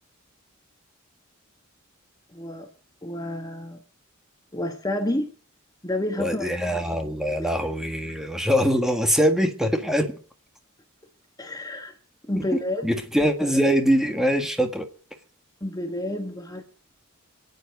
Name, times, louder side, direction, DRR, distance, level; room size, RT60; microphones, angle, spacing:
voice 1, 2.3-2.7 3.0-3.8 4.5-5.3 5.8-6.9 11.4-11.9 12.3-12.9 15.6-16.6, left 1 dB, 15° left, 1.3 m, -30 dB
voice 2, 6.2-10.2 12.3-14.9, equal, ahead, 1.7 m, -23 dB
26.5 x 9.5 x 5.3 m
head